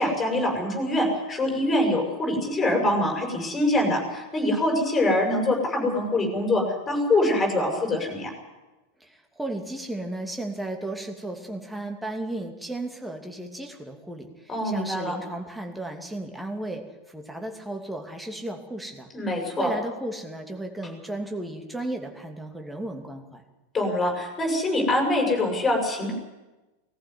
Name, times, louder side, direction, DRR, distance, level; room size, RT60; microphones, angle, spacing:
voice 1, 0.0-8.3 14.5-15.1 19.1-19.7 23.7-26.1, left 1 dB, 15° left, 2 dB, 6.5 m, -24 dB
voice 2, 9.4-14.3 14.6-16.8 17.1-19.1 19.6-23.4, right 1 dB, 5° right, 3 dB, 2.7 m, -34 dB
19.5 x 14.5 x 9.7 m, 1.1 s
figure-of-eight pair, 90°, 0 cm